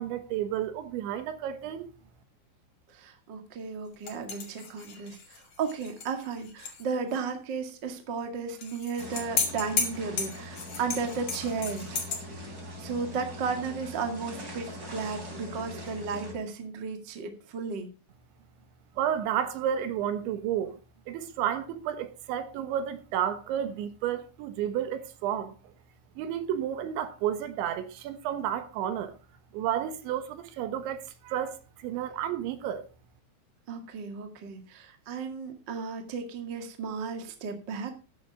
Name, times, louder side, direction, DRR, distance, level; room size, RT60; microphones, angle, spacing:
voice 1, 0.0-1.9 19.0-20.8 21.1-25.6 26.2-29.2 29.5-32.9, right 10 dB, 75° right, 3.5 m, -31 dB
voice 2, 2.9-12.0 12.8-17.9 33.7-38.0, right 5 dB, 50° right, 1.3 m, -34 dB
sound 1, 4.1-6.8 7.1-7.2 8.6-12.2, left 5 dB, 45° left, 2.6 m, -33 dB
sound 2, 9.0-16.3, equal, 20° right, 3.4 m, -42 dB
13.0 x 9.8 x 3.6 m
omnidirectional pair, 5.5 m